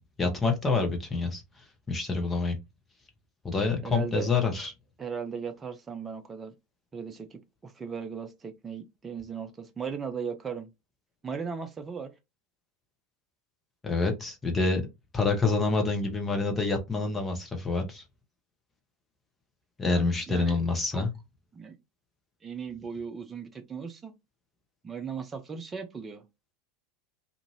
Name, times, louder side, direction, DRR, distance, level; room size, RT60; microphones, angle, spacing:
voice 1, 0.2-1.4 1.9-2.6 3.4-4.7 13.8-14.8 15.1-18.0 19.8-21.1, left 3 dB, 15° left, 1.0 m, -27 dB
voice 2, 3.8-4.3 5.0-6.5 6.9-10.7 11.2-12.1 19.8-20.6 20.9-21.1 21.5-21.8 22.4-24.1 24.8-26.2, right 6 dB, 20° right, 0.5 m, -37 dB
2.6 x 2.5 x 3.1 m
figure-of-eight pair, 80°, 0 cm